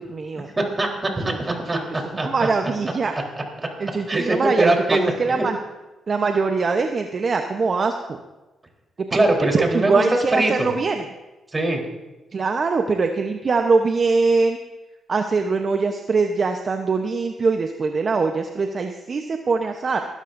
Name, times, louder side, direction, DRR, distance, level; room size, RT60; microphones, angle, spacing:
voice 1, 0.0-0.5 1.3-3.1 3.8-4.7 5.2-5.6 6.1-8.2 9.1-11.1 12.3-14.6 15.1-20.0, right 4 dB, 50° right, 5 dB, 0.9 m, -22 dB
voice 2, 0.6-2.5 4.1-5.5 9.1-10.0 10.3-10.7 11.5-11.8, right 2 dB, 30° right, 1 dB, 3.8 m, -22 dB
20.0 x 13.0 x 2.7 m, 1.1 s
supercardioid pair, 55°, 0 cm